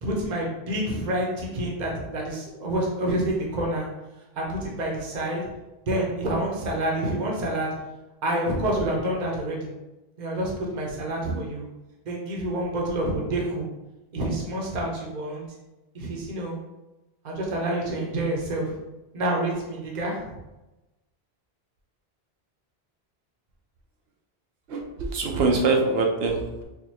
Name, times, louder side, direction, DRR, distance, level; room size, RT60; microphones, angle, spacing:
voice 1, 0.0-3.9 4.4-5.4 5.8-7.7 8.2-9.7 10.2-11.7 12.1-13.7 14.1-15.4 15.9-16.6 17.2-18.7 19.1-20.4, right 1 dB, 50° right, -2 dB, 0.9 m, -28 dB
voice 2, 24.7-26.6, right 3 dB, 75° right, 1 dB, 0.9 m, -24 dB
4.5 x 2.5 x 2.8 m, 1.0 s
omnidirectional pair, 1.0 m